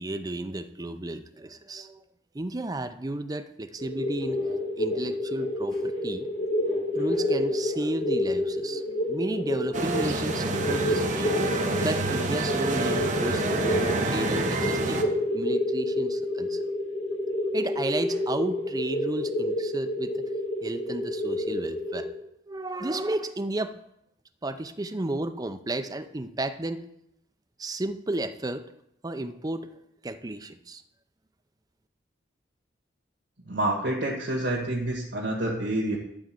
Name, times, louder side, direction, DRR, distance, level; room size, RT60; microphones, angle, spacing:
voice 1, 0.0-2.0 2.3-4.4 4.7-6.3 6.9-11.5 11.8-15.0 15.3-16.6 17.5-20.2 20.6-22.1 22.5-23.7 24.4-26.8 27.6-28.6 29.0-29.7 30.0-30.8, right 1 dB, 20° right, 9 dB, 0.6 m, -33 dB
sound 1, 3.8-22.1, left 1 dB, 75° left, 3.2 m, -29 dB
sound 2, 9.7-15.0, right 2 dB, 45° right, 1.0 m, -28 dB
voice 2, 33.5-36.0, right 1 dB, 85° right, -2 dB, 1.7 m, -28 dB
12.0 x 4.3 x 7.6 m, 0.79 s
head